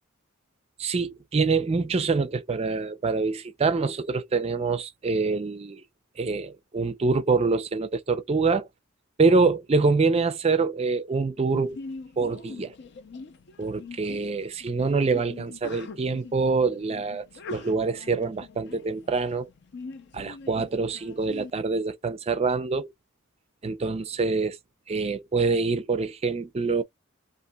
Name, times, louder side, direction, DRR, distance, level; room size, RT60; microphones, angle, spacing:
voice 1, 0.8-5.8 6.2-8.7 9.2-11.8 12.2-12.7 13.6-19.5 20.1-22.9 23.6-24.6 24.9-26.8, right 4 dB, 30° right, 0.4 m, -25 dB
Sneeze, 11.5-21.5, left 3 dB, 55° left, 0.5 m, -43 dB
3.8 x 2.5 x 2.2 m
head